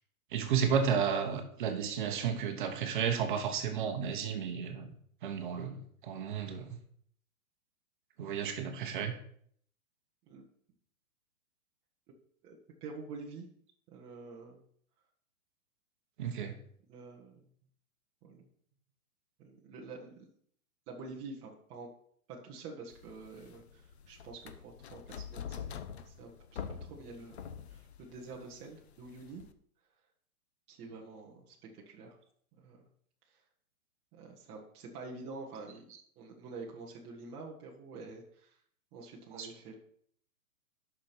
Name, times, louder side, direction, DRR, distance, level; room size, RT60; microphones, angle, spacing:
voice 1, 0.3-4.9 5.2-6.8 8.2-9.1 16.2-16.6 39.4-39.5, right 7 dB, 35° right, 6 dB, 1.1 m, -32 dB
voice 2, 12.8-13.5 13.9-14.6 16.9-17.4 18.2-18.5 19.4-20.3 20.9-21.9 22.4-26.3 26.6-27.4 27.7-29.4 30.7-32.2 32.6-32.8 33.3-33.4 34.1-35.8 36.2-38.6 38.9-39.8, right 3 dB, 15° right, -3 dB, 0.9 m, -47 dB
sound 1, 22.9-29.5, left 7 dB, 45° left, 0.8 m, -46 dB
9.6 x 6.0 x 5.8 m, 0.62 s
hypercardioid pair, 165°, 44 cm